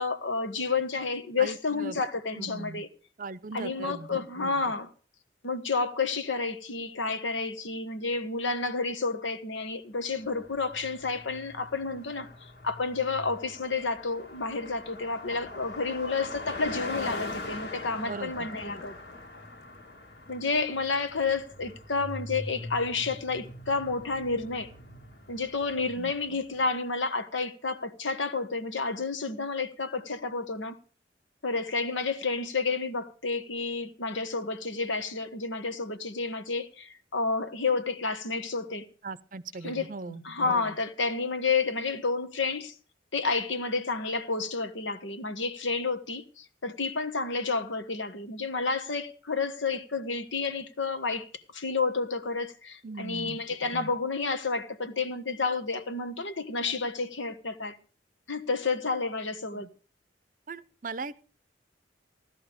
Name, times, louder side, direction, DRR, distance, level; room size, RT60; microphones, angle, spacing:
voice 1, 0.0-2.9 3.5-4.9 5.4-19.0 20.3-24.7 25.3-30.8 31.4-38.8 39.6-42.7 43.1-57.8 58.3-59.7, left 4 dB, 80° left, 1.4 m, -30 dB
voice 2, 1.4-2.0 2.3-2.8 3.2-4.2 18.0-18.5 26.0-26.1 39.0-40.2 52.8-53.4 59.5-59.7 60.5-61.2, right 3 dB, 45° right, 0.6 m, -39 dB
Car passing by, 10.2-26.3, left 2 dB, 60° left, 2.1 m, -42 dB
16.0 x 11.5 x 5.1 m
head